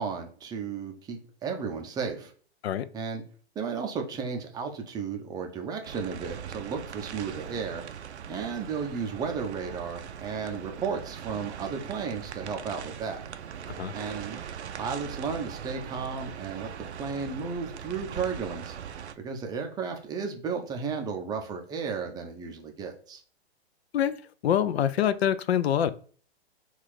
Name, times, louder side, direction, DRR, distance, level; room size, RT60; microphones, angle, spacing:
voice 1, 0.0-2.3 2.9-3.2 3.6-7.8 8.3-13.2 13.9-14.4 14.7-18.8 19.2-23.2, right 5 dB, 10° right, 4 dB, 0.5 m, -34 dB
sound 1, 5.8-19.1, right 8 dB, 85° right, 0.5 m, -41 dB
voice 2, 24.4-25.9, left 10 dB, 70° left, 15 dB, 0.5 m, -25 dB
4.2 x 2.4 x 4.7 m, 0.44 s
hypercardioid pair, 125°, 33 cm